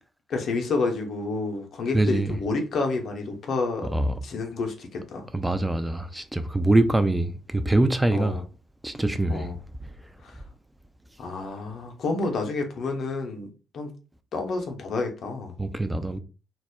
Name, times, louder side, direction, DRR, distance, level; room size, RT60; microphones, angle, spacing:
voice 1, 0.3-3.9 4.2-5.3 8.1-8.4 9.3-9.6 11.2-13.5 13.7-13.9 14.3-15.5, left 3 dB, 50° left, 0.6 m, -29 dB
voice 2, 1.9-2.4 3.9-4.1 5.3-8.4 8.8-9.5 15.6-16.2, right 2 dB, 10° right, 0.3 m, -24 dB
2.2 x 2.0 x 3.4 m
figure-of-eight pair, 45°, 0 cm